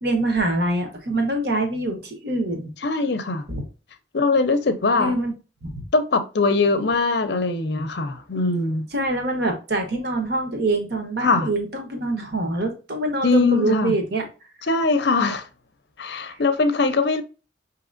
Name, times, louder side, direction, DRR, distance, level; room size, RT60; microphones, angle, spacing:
voice 1, 0.0-2.7 3.5-3.6 5.0-5.3 5.6-5.9 8.9-14.2, right 2 dB, 55° right, 1.1 m, -24 dB
voice 2, 2.8-3.5 4.1-5.2 5.9-8.9 11.2-11.5 13.2-13.9 14.7-15.5 16.0-17.2, left 3 dB, 55° left, 0.6 m, -21 dB
5.9 x 2.9 x 2.5 m
head